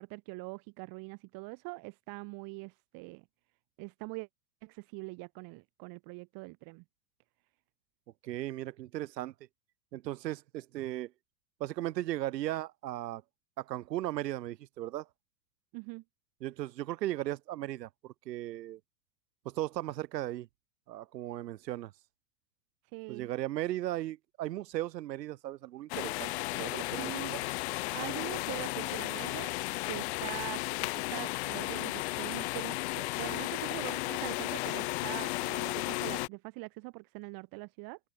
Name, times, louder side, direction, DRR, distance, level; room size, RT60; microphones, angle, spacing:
voice 1, 0.0-3.2 3.8-4.3 4.6-6.8 15.7-16.0 22.9-23.3 27.0-27.4 27.9-38.0, right 28 dB, 45° right, 2.2 m, -43 dB
voice 2, 8.2-9.3 9.9-11.1 11.6-13.2 13.6-15.1 16.4-18.8 19.4-20.5 20.9-21.9 23.1-27.4, right 14 dB, 75° right, 1.1 m, -36 dB
sound 1, 25.9-36.3, left 23 dB, 45° left, 0.4 m, -34 dB
open air
hypercardioid pair, 115°, 50 cm